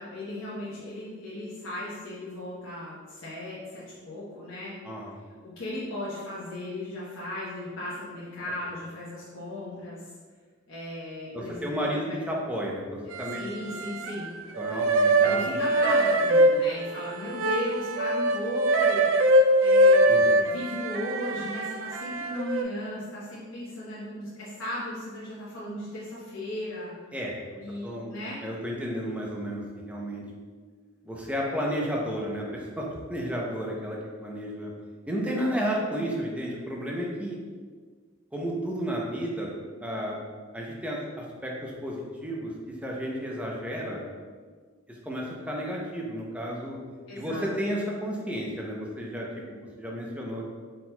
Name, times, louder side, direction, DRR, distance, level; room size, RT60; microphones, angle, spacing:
voice 1, 0.0-4.7 5.4-10.0 10.7-12.2 13.3-14.3 15.2-19.3 19.6-26.9 27.6-28.4 47.1-47.4, left 1 dB, 75° left, -9 dB, 0.9 m, -36 dB
voice 2, 4.8-5.2 11.3-13.4 14.6-15.6 20.1-20.2 27.1-28.1 28.4-30.2 31.0-34.7 35.1-37.4 38.3-39.5 39.8-40.2 40.5-44.1 45.1-46.8 47.2-50.5, equal, 5° right, -3 dB, 0.6 m, -32 dB
sound 1, 13.1-14.3 14.5-22.6, right 1 dB, 70° right, 0.3 m, -23 dB
4.4 x 3.9 x 2.2 m, 1.6 s
head